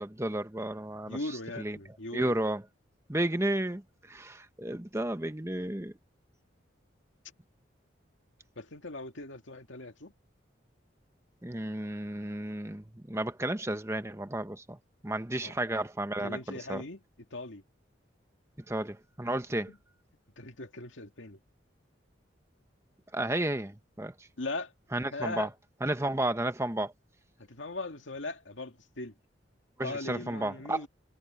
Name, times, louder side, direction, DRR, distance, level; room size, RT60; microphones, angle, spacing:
voice 1, 0.0-1.8 2.1-2.6 3.1-3.8 4.1-5.9 11.4-14.8 15.0-16.8 18.7-19.7 23.1-24.1 24.9-25.5 25.8-26.9 29.8-30.8, right 1 dB, 15° right, 1.0 m, -32 dB
voice 2, 1.1-2.4 8.6-10.1 15.4-15.5 16.2-17.0 17.3-17.6 19.7-19.8 20.4-21.4 24.4-24.7 25.0-25.5 27.4-29.1 29.8-30.9, left 2 dB, 80° left, 2.2 m, -39 dB
head